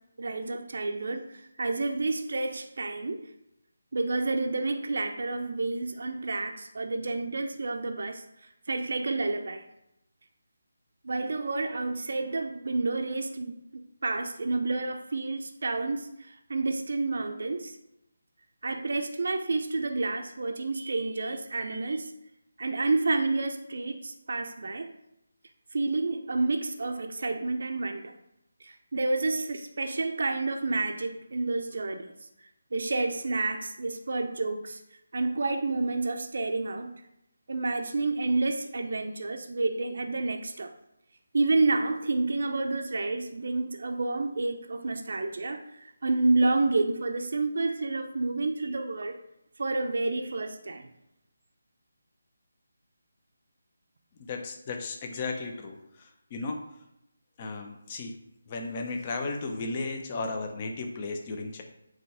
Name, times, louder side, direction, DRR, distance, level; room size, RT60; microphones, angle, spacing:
voice 1, 0.2-3.2 3.9-8.2 8.7-9.6 11.0-17.8 18.6-22.1 22.6-24.9 25.7-28.1 28.6-32.1 32.7-34.8 35.1-36.9 37.5-40.7 41.3-49.2 49.6-50.9, right 3 dB, 65° right, 5 dB, 0.6 m, -29 dB
voice 2, 54.2-56.6 57.4-58.2 58.5-61.6, left 3 dB, 30° left, 3 dB, 0.8 m, -35 dB
7.7 x 3.1 x 4.8 m, 0.83 s
figure-of-eight pair, 160°, 0 cm